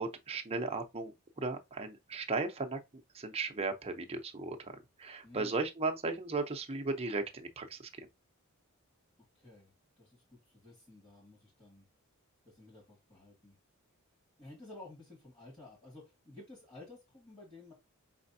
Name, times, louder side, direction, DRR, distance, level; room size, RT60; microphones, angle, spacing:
voice 1, 0.0-2.8 3.1-7.9, right 3 dB, 25° right, 0.6 m, -36 dB
voice 2, 5.2-5.6 9.3-11.9 12.5-13.6 14.4-17.7, left 2 dB, 20° left, 1.9 m, -53 dB
4.9 x 3.3 x 2.6 m
head